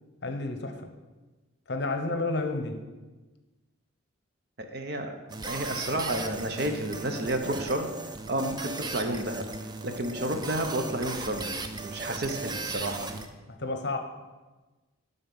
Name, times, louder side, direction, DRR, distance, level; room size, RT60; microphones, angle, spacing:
voice 1, 0.2-0.9 1.7-2.8 13.5-14.0, left 2 dB, 55° left, 6 dB, 0.8 m, -31 dB
voice 2, 4.6-5.1 5.4-7.9 8.3-9.4 9.8-13.2, right 1 dB, 50° right, 6 dB, 0.8 m, -31 dB
sound 1, 5.3-13.3, right 3 dB, 20° right, 0.4 m, -37 dB
12.0 x 3.9 x 5.4 m, 1.2 s
head